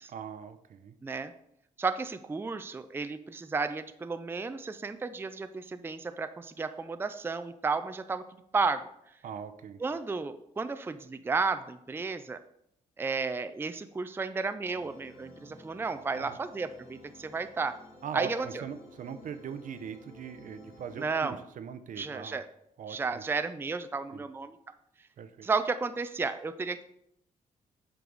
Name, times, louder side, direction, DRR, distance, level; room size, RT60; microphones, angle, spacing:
voice 1, 0.1-0.9 9.2-9.8 16.1-16.4 18.0-22.4 22.8-23.2 24.1-24.2 25.2-25.5, right 7 dB, 65° right, 10 dB, 0.7 m, -41 dB
voice 2, 1.0-1.3 1.8-8.2 8.5-8.8 9.8-12.4 13.0-17.8 18.1-18.6 21.0-21.4 22.0-22.5 22.9-24.6 25.4-26.8, right 4 dB, 15° right, 10 dB, 0.4 m, -33 dB
sound 1, 14.7-21.1, left 1 dB, 80° left, 2.2 m, -53 dB
8.1 x 4.6 x 3.9 m, 0.76 s
cardioid pair, 80°, 14 cm